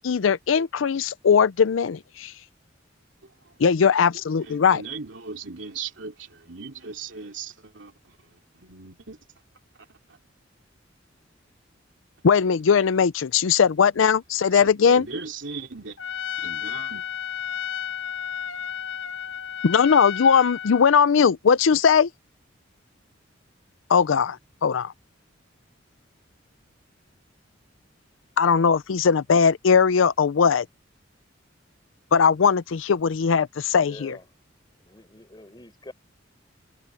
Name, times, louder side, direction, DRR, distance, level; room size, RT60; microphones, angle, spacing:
voice 1, 0.0-2.3 3.6-4.8 12.2-15.1 19.6-22.1 23.9-24.9 28.4-30.7 32.1-34.2, left 6 dB, 85° left, 0.5 m, -19 dB
voice 2, 3.2-3.5 4.4-9.2 9.9-10.2 14.5-16.0 16.4-17.1, right 4 dB, 70° right, 3.1 m, -38 dB
Trumpet, 16.0-20.9, left 9 dB, 70° left, 1.5 m, -32 dB
voice 3, 33.7-34.3 34.8-35.9, left 1 dB, 25° left, 6.6 m, -45 dB
head